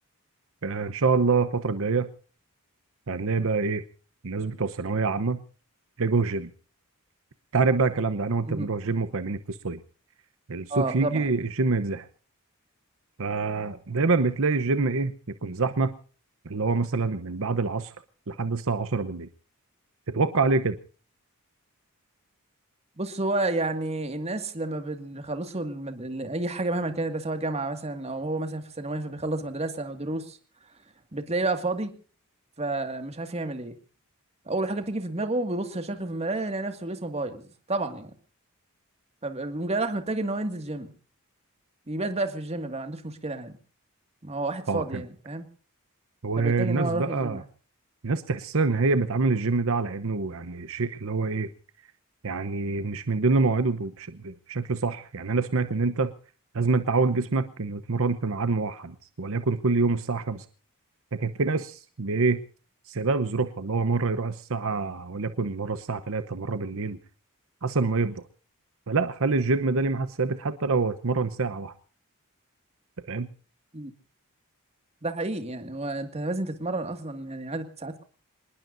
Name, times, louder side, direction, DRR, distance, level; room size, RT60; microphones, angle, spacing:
voice 1, 0.6-2.1 3.1-3.8 4.2-5.4 6.0-6.5 7.5-9.8 10.5-12.1 13.2-15.9 16.4-17.9 18.3-19.3 20.1-20.8 44.7-45.0 46.2-47.4 48.0-51.5 52.2-56.1 56.5-60.4 61.1-62.4 62.9-67.0 67.6-68.2 68.9-71.7 73.1-73.3, right 4 dB, 65° right, 12 dB, 0.9 m, -26 dB
voice 2, 10.7-11.2 23.0-30.4 31.1-31.9 32.6-33.7 34.5-38.1 39.2-40.9 41.9-43.5 44.2-45.5 46.4-47.4 73.7-73.9 75.0-78.0, right 2 dB, 30° right, 7 dB, 2.1 m, -30 dB
27.0 x 20.0 x 2.7 m, 0.38 s
head